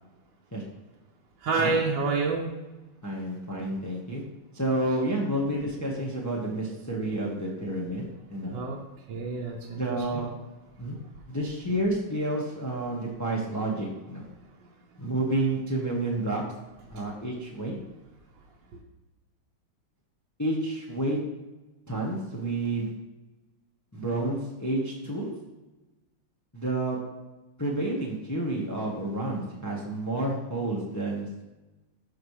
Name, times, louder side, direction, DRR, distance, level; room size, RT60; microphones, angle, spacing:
voice 1, 1.4-2.5 8.5-8.8 9.1-9.8 10.1-10.3, right 4 dB, 65° right, -2 dB, 1.6 m, -27 dB
voice 2, 3.0-4.2 4.5-8.6 9.7-10.4 10.8-11.0 11.3-14.2 15.0-16.6 16.9-17.8 20.4-21.4 21.9-23.0 23.9-25.4 26.5-27.2 27.6-31.4, right 1 dB, 10° left, -2 dB, 0.9 m, -30 dB
13.5 x 4.7 x 3.2 m, 1.1 s
omnidirectional pair, 2.3 m